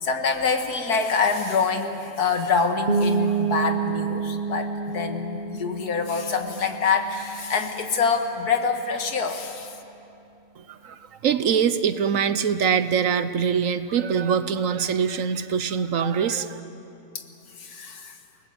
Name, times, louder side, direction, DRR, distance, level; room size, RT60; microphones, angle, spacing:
voice 1, 0.0-9.8 17.1-17.2 17.6-18.1, left 5 dB, 90° left, 5 dB, 2.1 m, -25 dB
sound 1, 2.9-8.5, right 5 dB, 40° right, 0.9 m, -29 dB
voice 2, 10.6-16.6, right 7 dB, 65° right, 12 dB, 1.1 m, -24 dB
29.0 x 19.0 x 7.9 m, 2.8 s
omnidirectional pair, 1.6 m